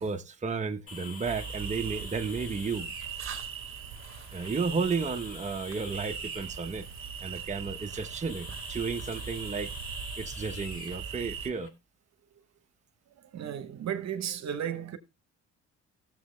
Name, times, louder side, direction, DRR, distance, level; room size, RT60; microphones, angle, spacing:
voice 1, 0.0-2.9 4.3-6.9 7.2-9.7 10.2-11.7, right 5 dB, 25° right, 1.0 m, -33 dB
sound 1, 0.9-11.7, left 4 dB, 45° left, 2.1 m, -47 dB
sound 2, 1.2-11.5, right 7 dB, 45° right, 1.5 m, -40 dB
voice 2, 13.1-15.0, right 9 dB, 60° right, 1.1 m, -34 dB
15.5 x 7.3 x 3.2 m
cardioid pair, 90°, 30 cm